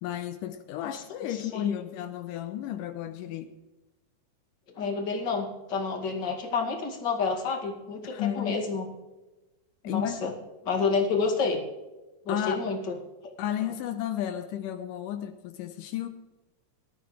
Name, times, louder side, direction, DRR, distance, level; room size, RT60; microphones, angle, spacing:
voice 1, 0.0-3.5 8.0-8.6 9.8-10.3 12.3-12.7 13.4-16.1, left 11 dB, 80° left, 2.3 m, -33 dB
voice 2, 1.3-1.8 4.8-8.9 9.8-10.3 10.6-11.6 12.3-12.9 13.2-13.3, left 4 dB, 35° left, 2.5 m, -29 dB
19.5 x 13.0 x 3.2 m
omnidirectional pair, 3.8 m